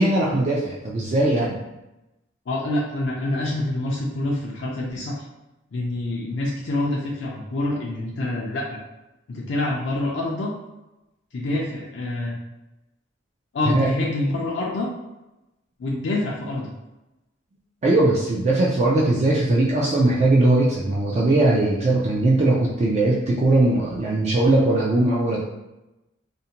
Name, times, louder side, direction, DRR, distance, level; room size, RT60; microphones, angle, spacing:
voice 1, 0.0-1.6 13.7-13.9 17.8-25.4, right 2 dB, 35° right, -5 dB, 0.3 m, -19 dB
voice 2, 2.5-5.2 5.7-8.8 9.3-10.5 11.3-12.4 13.5-14.9 15.8-16.7, left 2 dB, 60° left, -3 dB, 0.4 m, -26 dB
2.5 x 2.1 x 2.8 m, 0.98 s
head